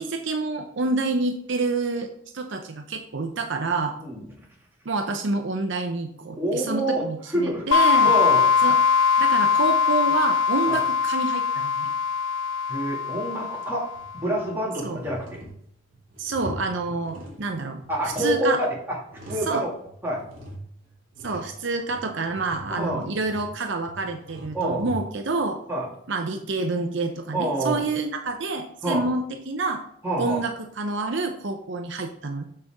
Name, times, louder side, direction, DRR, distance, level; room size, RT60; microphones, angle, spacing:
voice 1, 0.0-4.0 4.9-8.1 8.6-8.8 9.2-11.9 14.8-15.0 16.2-17.8 18.2-18.6 19.5-19.6 21.2-25.6 26.1-29.8 30.2-32.4, right 3 dB, 60° right, 5 dB, 0.7 m, -28 dB
voice 2, 6.3-7.0 7.3-7.6 8.0-8.5 10.7-10.8 12.7-13.9 14.1-15.4 17.9-19.0 19.2-19.7 20.0-20.2 22.7-23.0 24.5-24.8 25.7-25.9 27.3-27.9 28.8-29.1 30.0-30.4, right 1 dB, 10° right, -5 dB, 2.2 m, -27 dB
sound 1, 7.7-14.2, left 6 dB, 80° left, 0.4 m, -21 dB
sound 2, 13.9-14.5 14.9-17.5 17.8-19.6 19.8-25.4, right 1 dB, 40° right, 2.6 m, -42 dB
6.7 x 6.7 x 3.5 m, 0.67 s
head